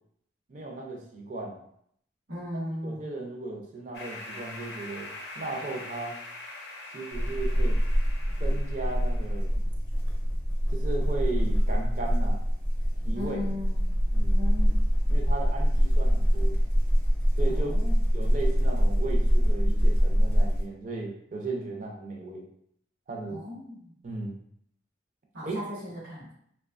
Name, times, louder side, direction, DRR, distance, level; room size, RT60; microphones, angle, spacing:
voice 1, 0.5-1.6 2.8-5.1 5.4-6.2 6.9-7.8 8.4-9.6 10.7-12.4 13.0-13.4 14.1-14.4 15.1-16.6 17.4-17.7 18.1-22.4 23.1-23.4 24.0-24.4 25.4-25.6, right 3 dB, 45° right, 0 dB, 0.5 m, -36 dB
voice 2, 2.3-3.1 13.1-13.9 14.3-14.7 17.5-18.0 23.3-23.9 25.3-26.3, left 1 dB, 75° right, -5 dB, 1.0 m, -37 dB
sound 1, 3.9-9.5, left 2 dB, 70° left, 0.5 m, -43 dB
sound 2, 7.1-20.6, equal, 15° left, 0.5 m, -24 dB
2.7 x 2.1 x 2.4 m, 0.68 s
head